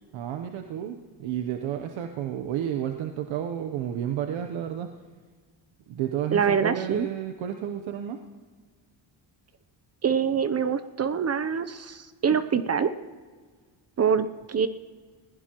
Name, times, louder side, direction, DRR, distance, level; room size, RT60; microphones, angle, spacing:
voice 1, 0.1-4.9 5.9-8.2, right 10 dB, 85° right, 6 dB, 0.9 m, -31 dB
voice 2, 6.3-7.1 10.0-12.9 14.0-14.7, right 7 dB, 35° right, 12 dB, 0.6 m, -25 dB
20.5 x 16.0 x 3.0 m, 1.5 s
cardioid pair, 95°, 45 cm